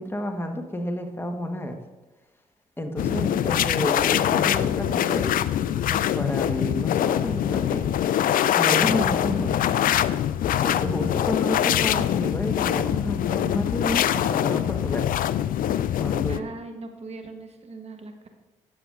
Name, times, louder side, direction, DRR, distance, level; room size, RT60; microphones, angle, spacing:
voice 1, 0.0-1.8 2.8-5.3 5.8-7.9 8.5-9.6 10.6-15.1 16.0-16.4, left 1 dB, 15° left, 5 dB, 1.3 m, -30 dB
sound 1, 3.0-16.4, left 11 dB, 60° left, 0.4 m, -23 dB
voice 2, 16.3-18.3, right 3 dB, 40° right, 5 dB, 1.3 m, -40 dB
12.5 x 6.9 x 2.5 m, 1.1 s
supercardioid pair, 55°, 16 cm